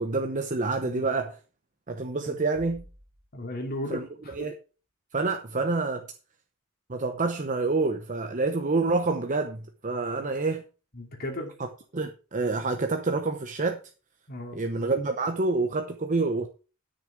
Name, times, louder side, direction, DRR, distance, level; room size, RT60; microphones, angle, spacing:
voice 1, 0.0-1.4 1.9-2.9 3.9-4.0 4.3-4.5 5.1-6.0 6.9-10.6 11.9-13.8 14.5-16.5, right 3 dB, 35° right, 0.9 m, -27 dB
Bass drum, 2.5-4.0, equal, 70° right, 2.3 m, -52 dB
voice 2, 3.3-4.4 10.9-11.5 14.3-14.6, left 1 dB, 45° left, 2.6 m, -35 dB
12.5 x 6.9 x 4.7 m
head